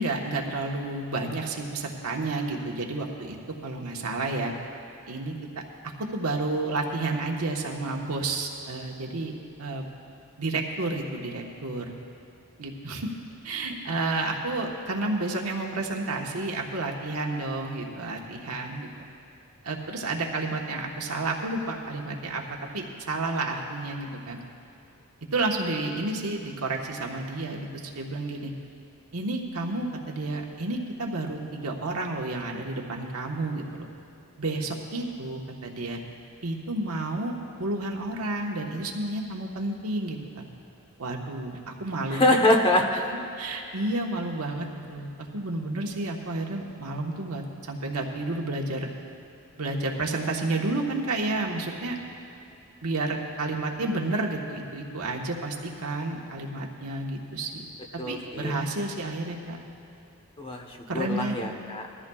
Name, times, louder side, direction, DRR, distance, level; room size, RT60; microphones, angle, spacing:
voice 1, 0.0-3.4 3.6-4.5 5.1-5.3 6.1-9.3 9.6-9.9 10.4-11.8 12.6-13.1 13.4-18.9 19.6-22.4 22.7-24.4 25.3-27.7 27.9-28.5 29.1-33.9 34.4-36.0 36.4-40.5 41.0-42.2 42.9-43.0 43.4-48.9 49.6-52.0 52.8-57.7 58.1-59.6 60.9-61.4, right 2 dB, 75° right, 1 dB, 1.3 m, -31 dB
voice 2, 42.1-42.9 58.0-58.6 60.4-61.9, left 1 dB, 25° left, 3 dB, 1.1 m, -24 dB
21.0 x 14.0 x 2.4 m, 2.7 s
head